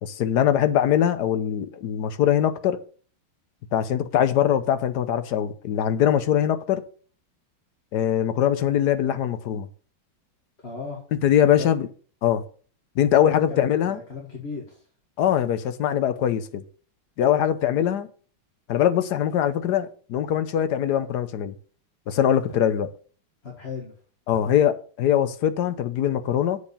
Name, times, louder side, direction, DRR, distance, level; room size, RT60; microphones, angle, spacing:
voice 1, 0.0-2.8 3.7-6.8 7.9-9.7 11.2-11.9 12.2-12.4 13.0-14.0 15.2-16.6 17.2-18.1 18.7-21.5 22.1-22.9 24.3-26.6, left 10 dB, 65° left, 1.2 m, -22 dB
voice 2, 10.6-11.0 11.5-11.7 13.5-14.8 22.5-22.7 23.4-23.9 24.5-24.6, left 4 dB, 35° left, 2.0 m, -36 dB
7.9 x 4.9 x 6.8 m
omnidirectional pair, 2.2 m